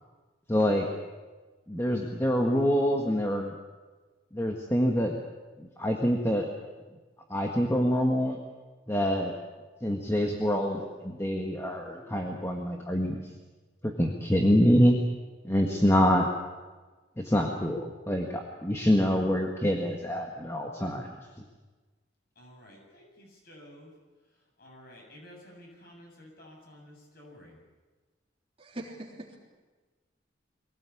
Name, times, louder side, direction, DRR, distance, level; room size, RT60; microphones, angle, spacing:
voice 1, 0.5-0.9 1.7-3.5 4.3-5.1 5.6-6.5 7.3-8.4 8.9-9.3 9.8-13.2 13.8-15.0 15.4-16.3 17.2-21.1, equal, 15° left, 1 dB, 1.7 m, -26 dB
voice 2, 22.4-23.9 24.6-27.6, left 1 dB, 50° left, 0 dB, 7.8 m, -52 dB
voice 3, 28.6-29.4, right 1 dB, 30° right, -1 dB, 3.5 m, -41 dB
23.5 x 17.5 x 8.6 m, 1.3 s
head